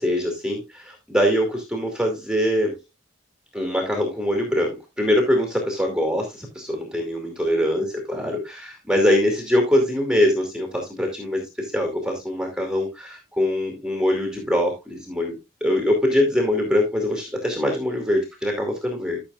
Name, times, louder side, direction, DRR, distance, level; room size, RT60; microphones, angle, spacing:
voice 1, 0.0-2.8 3.5-19.2, left 1 dB, 5° right, 2 dB, 2.4 m, -23 dB
14.0 x 7.0 x 2.4 m, 0.21 s
head